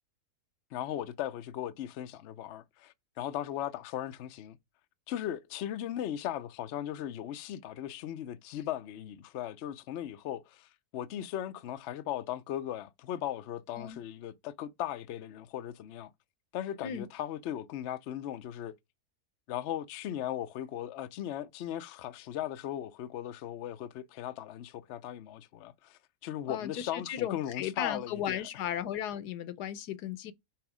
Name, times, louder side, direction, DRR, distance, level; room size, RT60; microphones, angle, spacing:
voice 1, 0.7-4.6 5.1-16.1 16.5-18.7 19.5-28.4, left 11 dB, 65° left, 0.7 m, -38 dB
voice 2, 26.4-30.3, left 10 dB, 85° left, 1.3 m, -36 dB
6.0 x 3.5 x 4.9 m
omnidirectional pair, 1.7 m